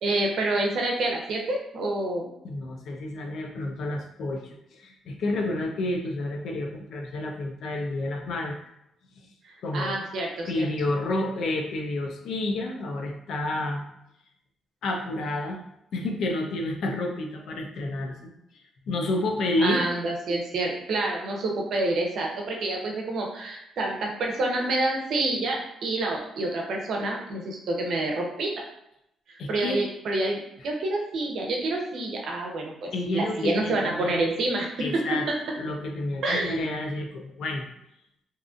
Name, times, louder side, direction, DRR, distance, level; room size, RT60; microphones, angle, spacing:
voice 1, 0.0-2.3 9.4-10.7 19.6-28.5 29.3-34.7 36.2-36.7, right 2 dB, 65° right, 0 dB, 0.6 m, -28 dB
voice 2, 2.4-4.4 4.7-8.6 9.6-10.0 10.4-13.9 14.8-15.6 15.9-19.9 29.4-29.8 32.9-34.2 34.8-35.3 35.6-37.7, left 2 dB, 70° left, 1 dB, 0.5 m, -30 dB
2.7 x 2.5 x 2.4 m, 0.82 s
cardioid pair, 90°, 0 cm